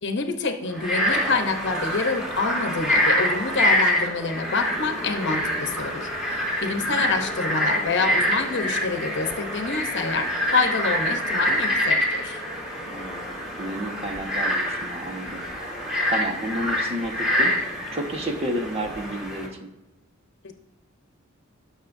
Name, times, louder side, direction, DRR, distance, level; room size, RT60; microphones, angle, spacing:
voice 1, 0.0-12.4, left 4 dB, 60° left, 6 dB, 1.0 m, -27 dB
Frog, 0.7-19.5, equal, 5° right, 3.1 m, -26 dB
voice 2, 12.9-15.5 16.1-17.6 17.9-19.7, equal, 30° right, 3 dB, 1.4 m, -31 dB
19.0 x 6.4 x 2.7 m, 0.99 s
head